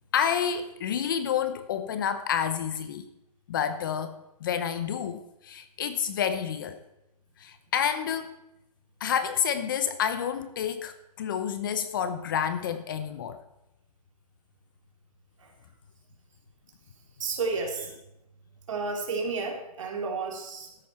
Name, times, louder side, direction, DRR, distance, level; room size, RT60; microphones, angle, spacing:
voice 1, 0.1-3.1 3.5-6.8 7.4-8.4 9.0-13.4, left 8 dB, 35° left, 11 dB, 0.8 m, -29 dB
voice 2, 17.2-17.9 18.7-20.7, right 4 dB, 55° right, 1 dB, 3.5 m, -31 dB
13.0 x 9.8 x 4.3 m, 0.89 s
hypercardioid pair, 160°, 20 cm